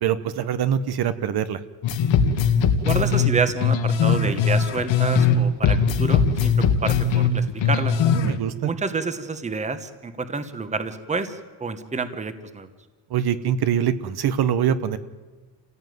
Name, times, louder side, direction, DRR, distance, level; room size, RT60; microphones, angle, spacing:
voice 1, 0.0-1.6 8.1-8.7 13.1-15.0, right 9 dB, 55° right, 12 dB, 1.1 m, -23 dB
sound 1, 1.8-5.4 5.6-8.4, left 6 dB, 75° left, 2.2 m, -20 dB
voice 2, 2.8-8.0 8.6-12.7, right 4 dB, 15° right, 11 dB, 1.2 m, -28 dB
28.5 x 16.5 x 9.4 m, 1.3 s
cardioid pair, 175°, 45 cm